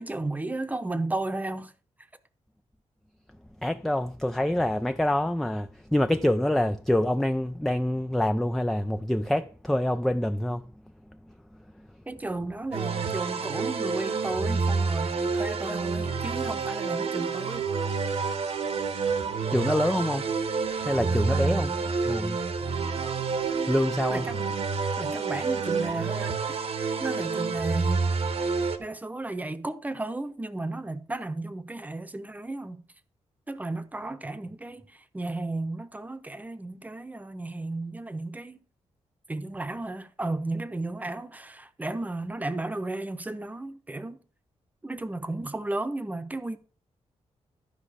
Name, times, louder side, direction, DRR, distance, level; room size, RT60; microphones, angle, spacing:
voice 1, 0.0-1.7 12.1-17.7 21.3-21.9 24.1-24.6 25.0-26.4 27.0-28.0 28.8-32.8 33.5-38.6 39.3-44.2 44.8-46.6, right 2 dB, 15° right, 0.9 m, -34 dB
voice 2, 3.6-10.7 19.5-20.3 20.8-21.7 22.1-22.4 23.7-24.2, left 1 dB, ahead, 0.4 m, -26 dB
sound 1, 12.7-28.8, right 4 dB, 65° right, 1.2 m, -28 dB
12.0 x 5.2 x 4.9 m
wide cardioid pair, 125°, 11 cm